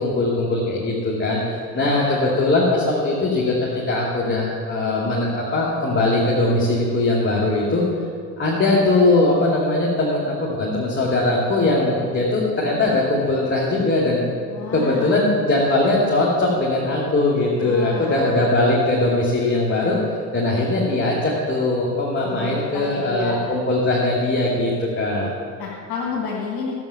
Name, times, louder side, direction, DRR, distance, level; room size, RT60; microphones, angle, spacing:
voice 1, 0.0-3.5 3.9-7.8 8.4-14.2 14.7-20.0 20.3-25.3, left 2 dB, 25° left, -4 dB, 2.6 m, -20 dB
voice 2, 1.7-2.3 14.5-15.3 17.6-18.5 22.2-23.6 25.2-26.8, left 4 dB, 50° left, -5 dB, 2.4 m, -31 dB
14.0 x 7.7 x 7.1 m, 2.2 s
figure-of-eight pair, 55°, 47 cm